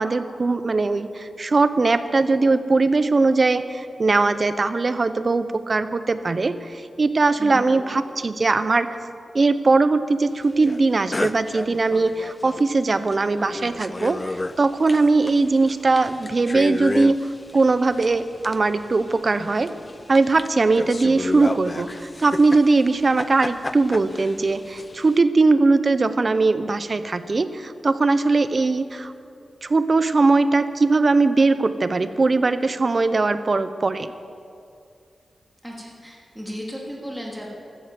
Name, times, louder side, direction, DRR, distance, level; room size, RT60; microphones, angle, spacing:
voice 1, 0.0-9.1 9.3-19.7 20.1-29.1 29.6-34.1, right 3 dB, 45° right, 12 dB, 0.8 m, -20 dB
voice 2, 7.4-7.8 35.6-37.6, equal, ahead, -3 dB, 3.1 m, -35 dB
sound 1, 10.6-10.8 11.1-12.7 13.1-13.2 13.4-25.2, left 2 dB, 25° left, 0.4 m, -33 dB
14.5 x 12.5 x 7.6 m, 2.4 s
cardioid pair, 75°, 0 cm